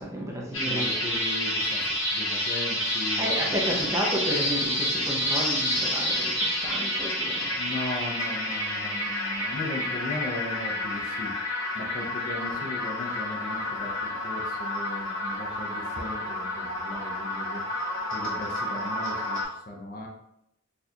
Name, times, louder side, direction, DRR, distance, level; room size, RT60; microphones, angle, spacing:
voice 1, 0.0-0.9 3.1-7.6, equal, 15° right, -3 dB, 0.5 m, -31 dB
sound 1, 0.5-19.4, left 1 dB, 75° left, 1.3 m, -29 dB
voice 2, 0.6-4.0 7.6-20.1, left 2 dB, 40° left, 1 dB, 0.5 m, -38 dB
4.2 x 2.4 x 2.8 m, 0.81 s
head